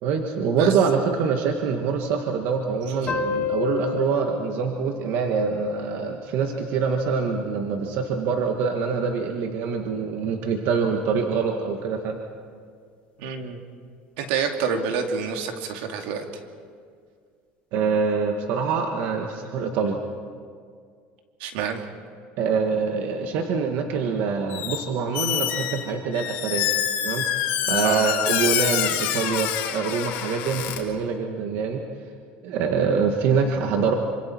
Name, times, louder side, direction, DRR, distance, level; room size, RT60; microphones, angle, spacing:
voice 1, 0.0-12.2 17.7-20.0 22.4-26.7 27.0-27.3 27.6-31.8 32.4-34.0, right 5 dB, 65° right, 3 dB, 1.7 m, -25 dB
sound 1, 3.1-6.2, left 7 dB, 30° left, 2.4 m, -31 dB
voice 2, 13.2-13.6 14.2-16.3 21.4-21.8 27.8-28.1, right 6 dB, 85° right, 4 dB, 2.5 m, -28 dB
Squeak, 24.5-24.8 25.1-30.8, left 11 dB, 65° left, 3.2 m, -26 dB
27.0 x 25.5 x 4.6 m, 2.1 s
cardioid pair, 140°, 4 cm